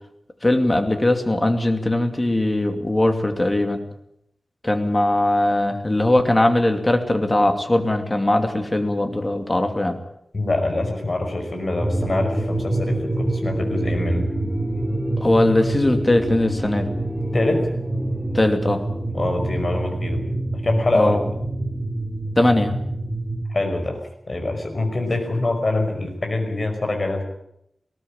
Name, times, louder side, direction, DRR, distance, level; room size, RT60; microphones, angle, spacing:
voice 1, 0.4-3.8 4.6-10.0 15.2-16.9 18.3-18.8 20.9-21.3 22.4-22.7, left 1 dB, 25° left, 6 dB, 2.6 m, -20 dB
voice 2, 10.3-14.3 17.3-17.7 19.1-20.2 20.5-21.1 23.5-24.0 24.3-27.2, left 2 dB, 40° left, 4 dB, 5.6 m, -24 dB
sound 1, 11.8-23.4, right 1 dB, 10° right, 1.5 m, -26 dB
19.5 x 18.0 x 8.9 m, 0.77 s
wide cardioid pair, 115°, 0 cm